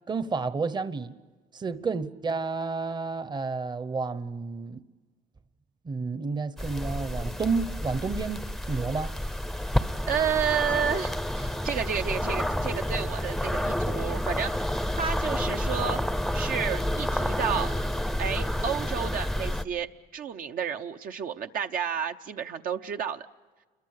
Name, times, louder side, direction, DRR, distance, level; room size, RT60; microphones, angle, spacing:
voice 1, 0.1-1.1 1.5-4.8 5.8-9.2, right 4 dB, 25° right, 0.9 m, -31 dB
sound 1, 6.6-19.6, left 1 dB, ahead, 0.7 m, -29 dB
voice 2, 10.1-16.0 16.3-17.7 18.2-23.3, right 7 dB, 55° right, 0.8 m, -31 dB
28.5 x 23.0 x 6.6 m
cardioid pair, 110°, 17 cm